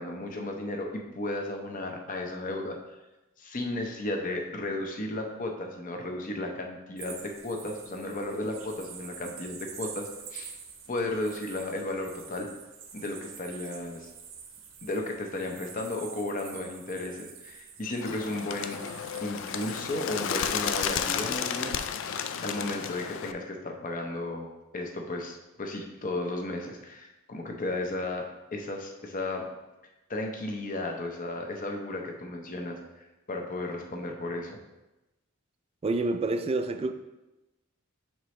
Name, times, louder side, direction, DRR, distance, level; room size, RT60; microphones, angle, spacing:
voice 1, 0.0-2.8 3.4-10.5 10.9-12.5 12.9-14.1 14.8-18.8 19.2-29.5 30.1-34.6, left 2 dB, 40° left, 2 dB, 0.7 m, -34 dB
sound 1, 7.0-21.9, right 6 dB, 70° right, 0.7 m, -47 dB
Bird, 18.0-23.3, left 8 dB, 60° left, 0.3 m, -32 dB
voice 2, 35.8-36.9, right 2 dB, 30° right, 8 dB, 0.3 m, -28 dB
6.6 x 4.6 x 3.1 m, 1.0 s
head